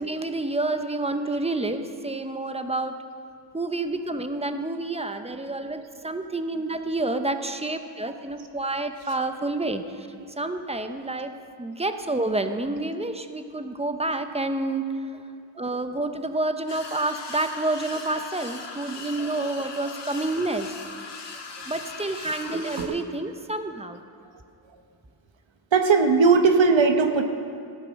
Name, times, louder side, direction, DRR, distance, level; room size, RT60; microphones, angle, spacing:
voice 1, 0.0-3.0 3.5-10.1 10.4-15.1 15.6-20.7 21.7-24.0, right 2 dB, 15° right, 8 dB, 0.7 m, -29 dB
voice 2, 8.8-9.2 18.2-18.3 19.1-19.5 19.8-19.9 22.5-23.0 25.7-27.2, right 4 dB, 80° right, 7 dB, 1.1 m, -21 dB
sound 1, 16.7-22.9, left 4 dB, 65° left, 1.6 m, -39 dB
14.0 x 9.4 x 6.3 m, 2.3 s
wide cardioid pair, 90°, 45 cm